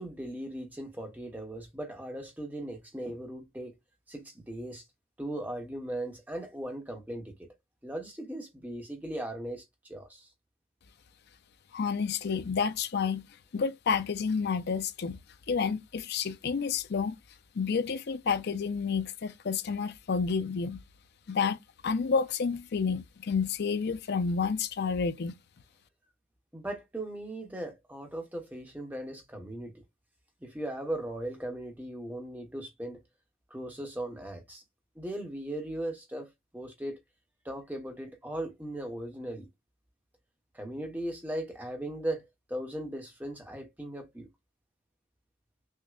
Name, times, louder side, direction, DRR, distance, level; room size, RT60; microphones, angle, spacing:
voice 1, 0.0-3.7 4.1-4.8 5.2-7.5 7.8-10.3 26.5-29.8 30.4-33.0 33.5-34.6 35.0-36.3 36.5-37.0 37.4-39.5 40.5-42.2 42.5-44.3, right 1 dB, 10° right, 0.9 m, -38 dB
voice 2, 11.7-13.3 13.5-15.2 15.5-17.2 17.5-20.8 21.3-21.6 21.8-25.4, left 5 dB, 50° left, 0.4 m, -30 dB
6.2 x 2.1 x 2.4 m
head